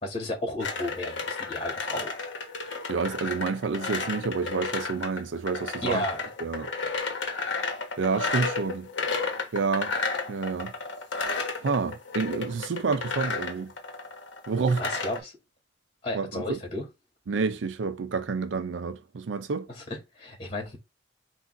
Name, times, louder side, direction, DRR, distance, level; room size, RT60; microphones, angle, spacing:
voice 1, 0.0-2.1 5.8-6.2 14.8-15.3 16.0-16.9 19.7-20.8, left 1 dB, 35° left, 2.4 m, -33 dB
sound 1, 0.6-15.2, left 4 dB, 80° left, 1.1 m, -32 dB
voice 2, 2.9-6.0 6.4-6.7 8.0-8.9 9.5-9.9 10.3-10.7 11.6-13.7 14.5-14.8 16.1-16.6 17.3-19.7, right 4 dB, 85° right, 0.5 m, -29 dB
5.8 x 2.7 x 2.5 m
head